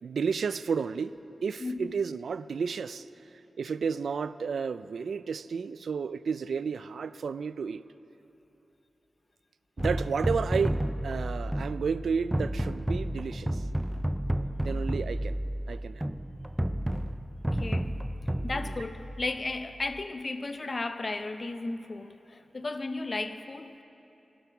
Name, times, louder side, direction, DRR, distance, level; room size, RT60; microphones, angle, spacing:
voice 1, 0.0-1.1 1.4-3.1 3.6-7.8 9.8-13.6 14.6-15.4 15.7-16.1 18.4-18.7, right 5 dB, 85° right, 15 dB, 0.3 m, -32 dB
voice 2, 1.6-1.9 17.5-18.0 18.4-23.7, left 3 dB, 35° left, 9 dB, 0.6 m, -34 dB
sound 1, 9.8-19.9, right 1 dB, 5° right, 0.4 m, -32 dB
16.5 x 11.5 x 6.0 m, 3.0 s
wide cardioid pair, 140°, 0 cm